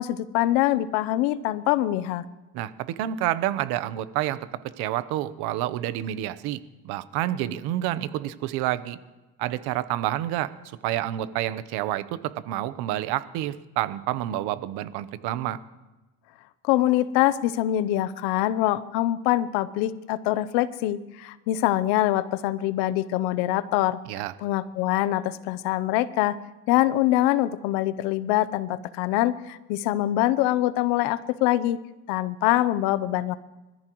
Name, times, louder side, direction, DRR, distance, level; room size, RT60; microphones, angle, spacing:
voice 1, 0.0-2.2 16.6-24.0 24.4-26.4 26.7-31.8 32.1-33.4, left 14 dB, 85° left, 16 dB, 0.8 m, -24 dB
voice 2, 2.5-4.4 4.8-6.6 6.8-9.0 9.4-10.5 10.8-15.6 24.1-24.3, right 13 dB, 80° right, 14 dB, 1.0 m, -28 dB
26.0 x 14.0 x 3.1 m, 1.1 s
cardioid pair, 105°, 38 cm